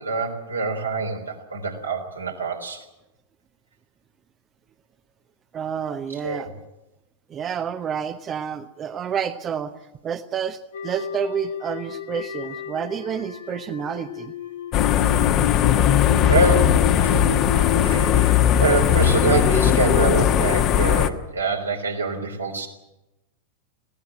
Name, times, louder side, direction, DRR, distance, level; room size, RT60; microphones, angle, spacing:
voice 1, 0.0-2.8 6.1-6.5 15.6-15.7 16.3-17.4 17.7-18.3 18.6-22.7, right 3 dB, 80° right, 3 dB, 3.8 m, -25 dB
voice 2, 5.5-6.5 7.3-9.7 10.0-14.3 17.5-18.2, right 8 dB, 25° right, 10 dB, 0.9 m, -29 dB
sound 1, 10.7-19.9, left 8 dB, 65° left, 1.4 m, -31 dB
sound 2, 14.7-21.1, left 10 dB, 35° left, 1.3 m, -18 dB
21.0 x 16.5 x 8.7 m, 0.95 s
figure-of-eight pair, 90°, 0 cm